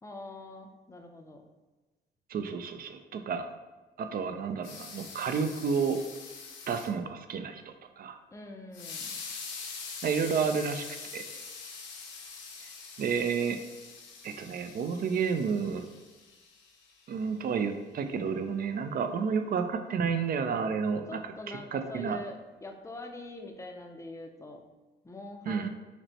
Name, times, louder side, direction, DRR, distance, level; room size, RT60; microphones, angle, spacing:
voice 1, 0.0-1.4 8.3-9.1 21.1-24.6 25.0-25.7, left 2 dB, 15° left, 3 dB, 0.5 m, -44 dB
voice 2, 2.3-3.5 4.0-6.0 6.7-8.2 10.0-10.9 11.1-11.2 13.0-13.6 14.2-15.8 17.1-21.2 21.5-22.2 25.5-25.7, right 6 dB, 50° right, 8 dB, 0.4 m, -30 dB
sound 1, 4.6-6.9 8.7-17.1, left 5 dB, 70° left, 0.7 m, -44 dB
5.9 x 2.1 x 2.8 m, 1.2 s
cardioid pair, 90°, 20 cm